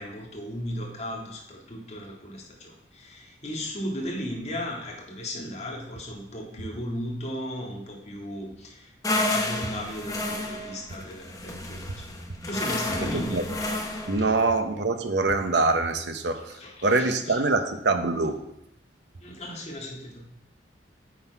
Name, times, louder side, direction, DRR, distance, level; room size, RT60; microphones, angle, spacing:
voice 1, 0.0-13.4 14.2-14.4 16.5-17.4 19.2-20.2, equal, 40° left, -2 dB, 1.9 m, -36 dB
sound 1, 9.0-14.2, left 1 dB, 20° left, 1.0 m, -30 dB
voice 2, 13.0-13.4 14.1-16.5 16.8-18.4, right 3 dB, 70° right, 8 dB, 0.9 m, -24 dB
9.5 x 6.2 x 4.7 m, 0.81 s
head